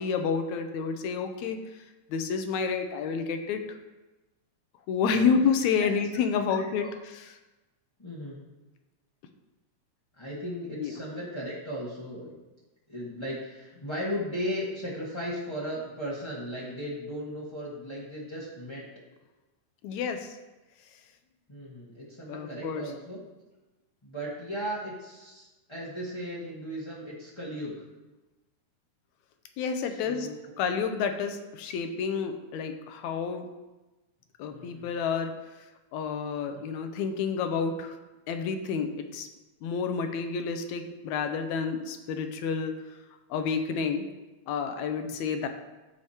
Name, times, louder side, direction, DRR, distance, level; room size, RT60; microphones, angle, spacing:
voice 1, 0.0-1.6 2.1-3.8 4.9-6.9 10.8-10.9 19.8-20.4 22.3-22.8 29.6-30.3 30.6-33.4 34.4-35.3 35.9-37.9 38.3-39.3 39.6-42.7 43.3-44.1 44.5-45.5, left 6 dB, 80° left, 7 dB, 2.0 m, -29 dB
voice 2, 8.0-8.4 10.2-12.4 12.9-18.8 21.5-23.2 24.0-27.8 30.0-30.4 34.5-34.9, equal, 25° left, -8 dB, 0.6 m, -36 dB
14.5 x 4.9 x 2.9 m, 1.1 s
omnidirectional pair, 3.3 m